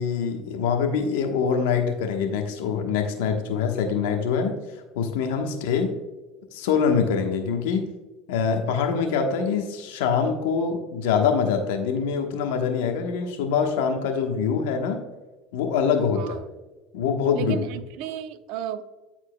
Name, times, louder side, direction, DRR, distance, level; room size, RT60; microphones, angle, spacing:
voice 1, 0.0-4.6 4.9-5.9 6.5-7.9 8.3-15.0 15.5-16.2 16.9-17.6, left 6 dB, 85° left, 4 dB, 1.1 m, -24 dB
voice 2, 16.2-16.5 17.3-18.8, right 10 dB, 70° right, 11 dB, 0.6 m, -33 dB
13.0 x 4.4 x 2.2 m, 1.2 s
supercardioid pair, 100°, 0 cm